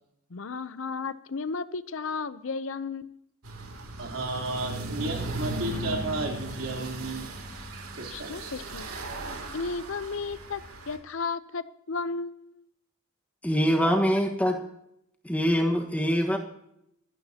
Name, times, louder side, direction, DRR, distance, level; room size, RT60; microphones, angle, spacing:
voice 1, 0.3-3.1 8.0-8.9 9.5-12.6, left 4 dB, 65° left, 15 dB, 0.6 m, -34 dB
sound 1, 3.4-11.0, right 1 dB, 85° right, 2.7 m, -37 dB
voice 2, 4.0-7.3 7.7-8.5, right 2 dB, 70° right, 1 dB, 3.4 m, -33 dB
voice 3, 13.4-14.6 15.2-16.4, equal, 5° left, 3 dB, 1.3 m, -24 dB
24.0 x 12.5 x 2.8 m, 0.77 s
head